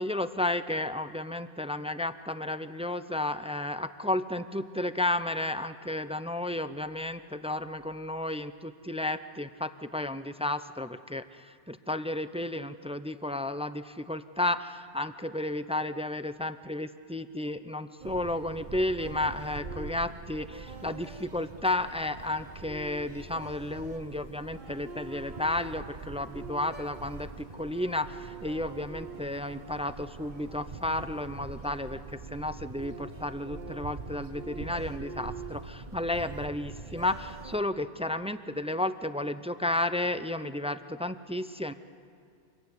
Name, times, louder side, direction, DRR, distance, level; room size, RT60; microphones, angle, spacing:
voice 1, 0.0-41.7, left 1 dB, 5° right, 11 dB, 0.5 m, -32 dB
sound 1, 18.0-37.6, right 4 dB, 45° right, 1.2 m, -43 dB
27.5 x 22.5 x 9.7 m, 2.5 s
omnidirectional pair, 1.2 m